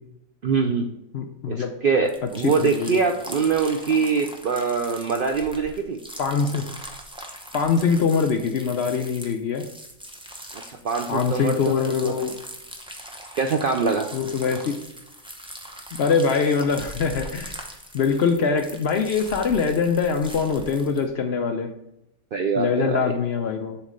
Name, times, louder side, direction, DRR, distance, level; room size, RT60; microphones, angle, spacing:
voice 1, 0.4-0.9 1.5-6.0 10.7-12.1 13.3-14.1 22.3-23.1, right 5 dB, 65° right, 4 dB, 0.5 m, -24 dB
voice 2, 1.1-1.7 2.4-3.0 6.2-6.7 7.5-9.6 11.1-12.3 14.1-14.8 16.0-17.5 17.9-21.7 22.6-23.8, left 5 dB, 60° left, 6 dB, 0.7 m, -23 dB
sound 1, 2.0-21.0, equal, 5° right, 0.5 m, -41 dB
7.3 x 3.1 x 5.1 m, 0.83 s
omnidirectional pair, 1.4 m